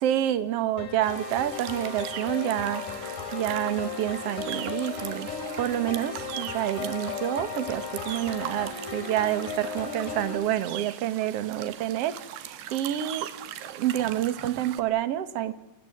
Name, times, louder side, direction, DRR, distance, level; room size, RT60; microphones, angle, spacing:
voice 1, 0.0-5.3 5.6-12.1 12.4-13.3 13.6-15.5, right 12 dB, 65° right, 13 dB, 1.5 m, -28 dB
sound 1, 0.8-10.4, left 5 dB, 50° left, 4.4 m, -36 dB
sound 2, 1.0-14.8, right 11 dB, 85° right, 3.6 m, -40 dB
28.5 x 24.0 x 7.9 m, 1.0 s
omnidirectional pair, 4.7 m